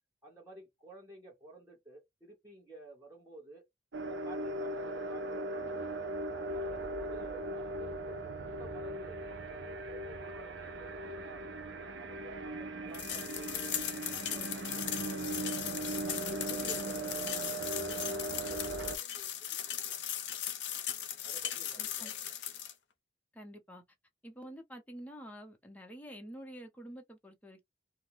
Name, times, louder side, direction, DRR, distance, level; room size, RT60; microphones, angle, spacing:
voice 1, 0.2-3.7 4.0-5.9 6.3-11.5 11.8-15.6 16.1-20.0 21.2-22.3, right 2 dB, 15° right, 1.1 m, -53 dB
sound 1, 3.9-19.0, right 2 dB, 80° right, 0.6 m, -39 dB
sound 2, 12.9-22.7, left 10 dB, 65° left, 0.6 m, -38 dB
voice 2, 21.8-22.1 23.3-23.8 24.2-27.7, equal, 10° left, 0.7 m, -48 dB
2.5 x 2.2 x 3.0 m
head